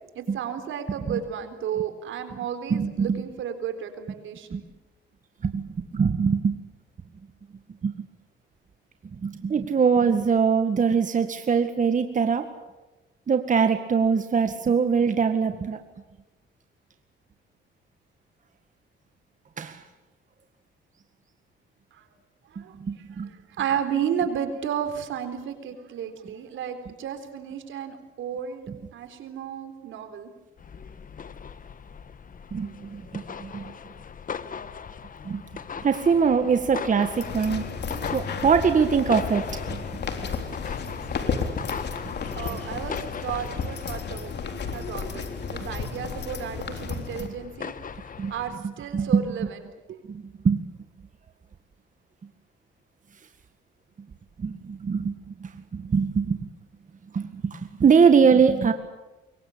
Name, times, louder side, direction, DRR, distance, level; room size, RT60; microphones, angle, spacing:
voice 1, 0.1-4.6 21.9-22.0 22.5-22.7 23.1-30.3 42.4-47.7 48.3-49.6 49.9-50.0, right 8 dB, 80° right, 8 dB, 4.0 m, -33 dB
voice 2, 2.7-3.2 4.5-4.6 5.4-6.6 7.8-8.0 9.0-12.6 13.3-15.8 19.6-19.8 22.8-23.3 32.5-33.7 35.2-35.4 35.8-39.8 48.2-48.3 48.9-49.5 50.1-50.6 54.4-56.5 57.1-58.7, right 6 dB, 40° right, 7 dB, 1.8 m, -23 dB
sound 1, 30.6-48.6, left 6 dB, 45° left, 1.4 m, -39 dB
sound 2, 37.0-47.3, left 5 dB, 60° left, 3.7 m, -33 dB
25.0 x 23.0 x 8.7 m, 1.1 s
cardioid pair, 90°, 20 cm